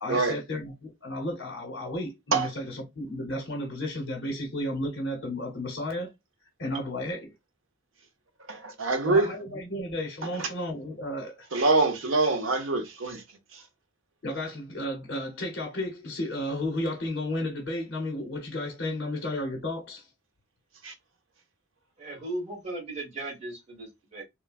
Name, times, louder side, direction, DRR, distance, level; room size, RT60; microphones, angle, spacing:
voice 1, 0.0-6.1 6.6-7.3 9.0-11.5 14.2-20.0, left 1 dB, 65° left, 0.9 m, -33 dB
voice 2, 8.5-9.3 11.5-13.2 20.8-20.9, right 3 dB, 80° right, 0.7 m, -24 dB
voice 3, 22.0-24.2, right 2 dB, 35° right, 1.4 m, -37 dB
3.0 x 2.2 x 2.3 m
head